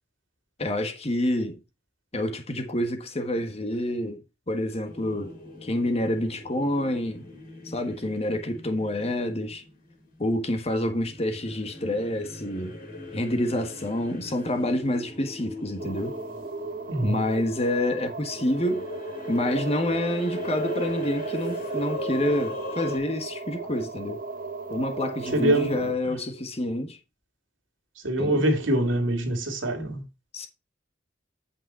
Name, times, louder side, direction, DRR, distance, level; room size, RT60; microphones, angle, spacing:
voice 1, 0.6-1.6 2.1-5.3 5.6-7.2 7.6-9.6 10.2-12.8 13.1-16.2 17.0-18.9 19.3-24.2 24.7-27.0 28.2-28.5 30.3-30.5, left 1 dB, 35° left, 1.5 m, -28 dB
sound 1, 4.9-10.4 10.9-23.0, left 2 dB, 50° left, 3.2 m, -40 dB
sound 2, 15.8-25.9, right 4 dB, 45° right, 0.9 m, -36 dB
voice 2, 16.9-17.2 25.3-26.1 28.0-30.0, right 1 dB, 90° right, 2.5 m, -25 dB
8.6 x 5.4 x 4.3 m
head